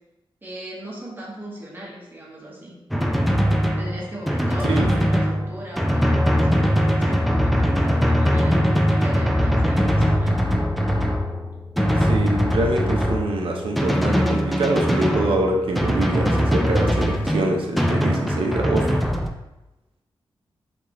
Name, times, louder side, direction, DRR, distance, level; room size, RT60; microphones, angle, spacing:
voice 1, 0.4-2.7 3.8-10.4, equal, 20° right, -4 dB, 1.2 m, -37 dB
Drum, 2.9-19.3, equal, ahead, 0.4 m, -21 dB
voice 2, 12.0-18.9, right 2 dB, 85° right, 1 dB, 0.7 m, -25 dB
4.8 x 3.5 x 3.0 m, 0.98 s
wide cardioid pair, 125°, 9 cm